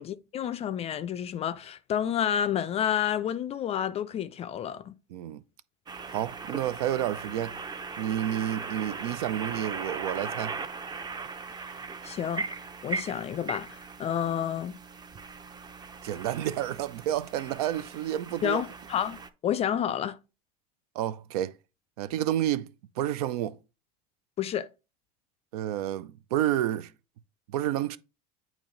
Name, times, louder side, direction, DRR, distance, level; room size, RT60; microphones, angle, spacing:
voice 1, 0.0-4.9 12.0-14.8 18.4-20.2 24.4-24.7, left 9 dB, 30° left, 0.4 m, -30 dB
voice 2, 5.1-5.4 6.1-7.6 8.0-10.6 16.0-18.6 20.9-21.5 22.0-22.7 23.0-23.6 25.5-26.9 27.5-28.0, right 12 dB, 75° right, 0.5 m, -30 dB
sound 1, 5.9-19.3, right 4 dB, 20° right, 0.6 m, -39 dB
8.4 x 3.0 x 3.8 m
supercardioid pair, 100°, 19 cm